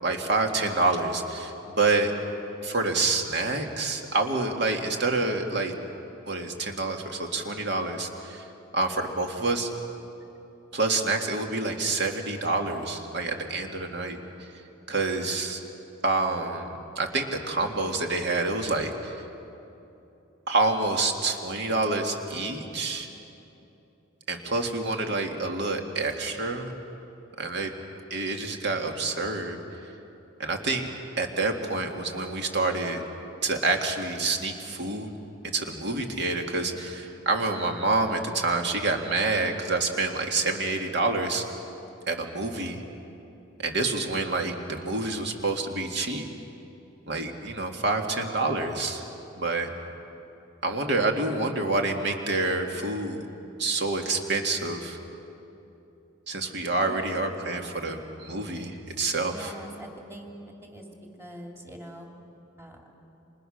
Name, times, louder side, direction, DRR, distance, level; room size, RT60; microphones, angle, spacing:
voice 1, 0.0-2.1 2.6-5.7 6.3-8.5 8.7-9.7 10.7-14.2 14.9-15.6 16.0-16.7 17.0-19.2 20.5-23.1 24.3-26.7 27.4-27.7 28.1-29.6 30.4-30.9 31.2-33.0 33.4-35.1 35.5-41.5 42.1-42.8 43.6-46.3 47.1-49.1 49.4-49.7 50.6-53.2 53.6-55.0 56.3-59.5, right 3 dB, 55° right, 3 dB, 2.4 m, -27 dB
voice 2, 56.8-57.2 59.3-60.4 60.6-60.9 61.2-62.1 62.6-62.9, equal, 10° right, 1 dB, 3.0 m, -43 dB
30.0 x 27.0 x 6.6 m, 2.9 s
head